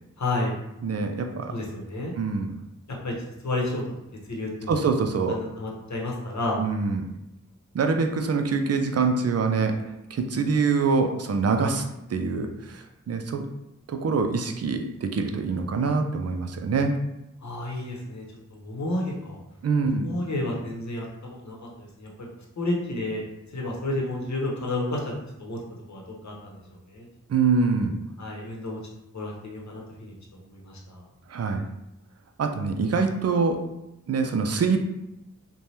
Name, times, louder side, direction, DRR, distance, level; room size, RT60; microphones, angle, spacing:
voice 1, 0.2-0.6 1.5-2.1 3.0-3.1 3.4-3.8 4.3-4.8 5.3-6.6 17.4-18.2 18.5-19.4 19.9-22.1 22.6-23.2 23.5-25.1 25.4-25.6 25.9-26.6 26.9-27.1 28.2-28.8 29.1-30.1 30.5-31.0, left 2 dB, 60° left, -1 dB, 0.8 m, -31 dB
voice 2, 0.8-1.5 2.2-2.5 4.7-5.4 6.6-7.0 7.7-9.8 10.1-11.8 12.1-13.4 13.9-17.0 19.6-20.1 27.3-27.9 31.3-31.6 32.4-33.6 34.1-34.8, right 4 dB, 50° right, 6 dB, 0.4 m, -24 dB
3.2 x 2.2 x 2.7 m, 0.88 s
cardioid pair, 40°, 32 cm